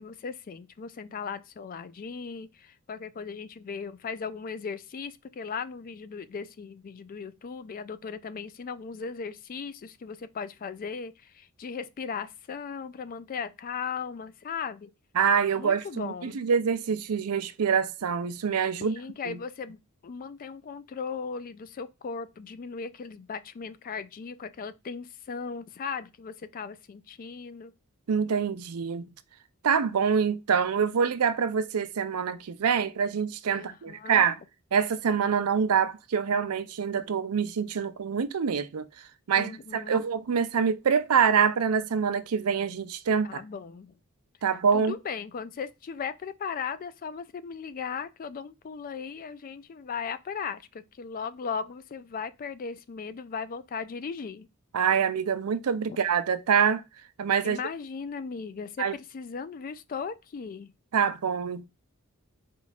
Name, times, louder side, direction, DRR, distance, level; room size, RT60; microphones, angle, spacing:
voice 1, 0.0-14.9 15.5-16.4 18.8-27.7 33.5-34.3 39.3-40.0 43.2-43.9 44.7-54.5 57.4-60.7, left 5 dB, 40° left, 0.3 m, -37 dB
voice 2, 15.2-18.9 19.3-19.4 28.1-29.0 29.6-34.4 34.7-38.9 39.3-43.4 44.4-44.9 54.7-56.8 57.2-57.6 58.8-58.9 60.9-61.6, right 6 dB, 85° right, 0.5 m, -25 dB
4.5 x 2.4 x 4.0 m
head